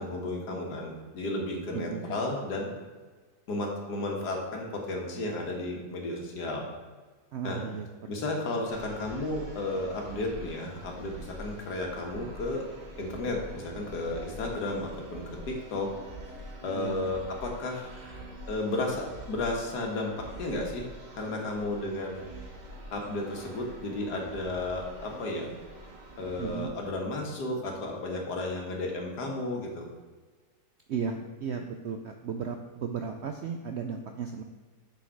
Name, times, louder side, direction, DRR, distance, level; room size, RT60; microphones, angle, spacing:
voice 1, 0.0-2.7 3.5-6.7 7.4-7.6 8.1-12.7 13.0-15.9 16.6-17.9 18.5-20.9 21.2-22.3 22.9-25.5 26.2-29.9, left 2 dB, 90° left, 1 dB, 1.9 m, -33 dB
voice 2, 1.7-2.3 7.3-8.3 16.7-17.1 26.4-26.7 30.9-34.4, right 6 dB, 75° right, 5 dB, 0.6 m, -35 dB
sound 1, 8.7-26.6, right 1 dB, 45° right, 1.4 m, -45 dB
6.6 x 6.3 x 4.6 m, 1.4 s
omnidirectional pair, 1.7 m